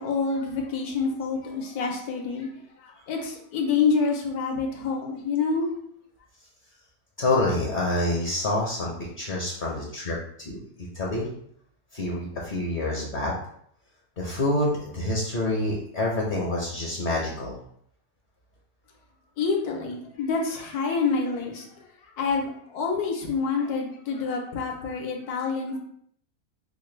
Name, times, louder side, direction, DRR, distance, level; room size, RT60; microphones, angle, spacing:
voice 1, 0.0-2.5 3.1-5.7 19.4-21.6 22.2-25.8, left 4 dB, 80° left, 1 dB, 1.3 m, -27 dB
voice 2, 7.2-11.3 11.9-13.3 14.2-17.6, left 1 dB, 45° left, -2 dB, 0.7 m, -27 dB
5.0 x 2.1 x 3.2 m, 0.66 s
omnidirectional pair, 1.6 m